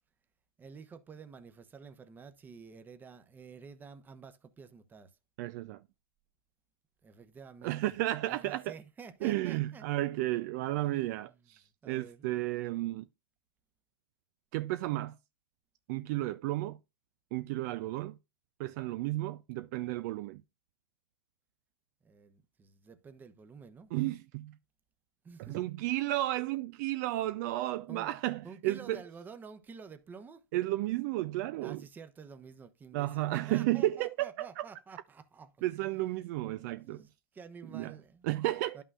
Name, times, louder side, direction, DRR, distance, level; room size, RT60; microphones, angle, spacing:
voice 1, 0.6-5.1 7.0-8.0 8.3-9.9 10.8-10.9 11.2-11.4 11.8-12.3 22.0-23.9 25.2-25.6 27.9-28.1 28.4-30.4 31.6-36.0 36.7-38.4 38.7-38.8, right 5 dB, 15° right, 0.8 m, -50 dB
voice 2, 5.4-5.8 7.6-8.7 9.2-13.1 14.5-15.2 15.9-16.8 17.3-18.2 18.6-20.4 23.9-24.6 25.5-29.0 30.5-31.8 32.9-34.7 35.6-37.0 37.7-37.9 38.2-38.8, right 16 dB, 45° right, 0.4 m, -33 dB
11.0 x 5.6 x 2.4 m
hypercardioid pair, 135°, 12 cm